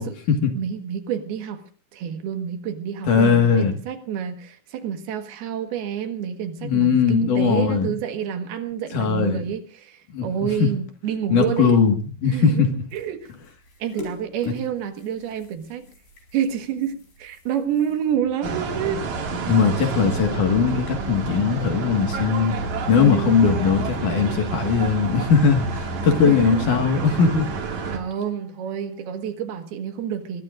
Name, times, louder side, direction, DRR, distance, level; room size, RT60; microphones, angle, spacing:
voice 1, 0.0-0.5 3.1-3.8 6.6-7.9 8.9-9.5 10.1-10.3 10.6-10.7 11.3-12.7 14.5-14.6 19.5-22.6 22.9-27.5, left 6 dB, 55° left, 5 dB, 2.9 m, -19 dB
voice 2, 0.5-1.6 1.9-11.8 12.3-12.7 12.9-13.3 13.8-15.9 16.3-19.1 23.0-23.4 26.2-26.7 27.9-30.4, right 9 dB, 70° right, 7 dB, 3.4 m, -28 dB
sound 1, 11.1-20.7, left 2 dB, 80° left, 7.3 m, -45 dB
sound 2, 18.4-28.0, right 4 dB, 50° right, 3.1 m, -29 dB
sound 3, 18.6-29.0, right 1 dB, 25° right, 3.4 m, -39 dB
23.5 x 20.0 x 2.5 m, 0.38 s
omnidirectional pair, 4.7 m